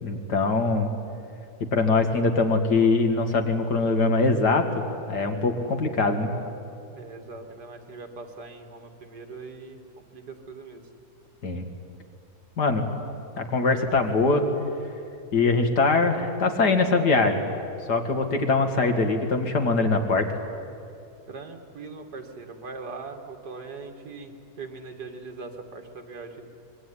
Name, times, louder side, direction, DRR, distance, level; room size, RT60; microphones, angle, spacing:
voice 1, 0.0-0.9 1.7-6.3 11.4-11.6 12.6-12.8 13.4-14.4 15.3-17.5 17.9-20.3, left 3 dB, 85° left, 5 dB, 2.8 m, -22 dB
voice 2, 6.9-9.8 10.1-10.8 21.3-26.4, right 4 dB, 80° right, 5 dB, 2.6 m, -41 dB
25.0 x 22.0 x 10.0 m, 2.6 s
omnidirectional pair, 1.7 m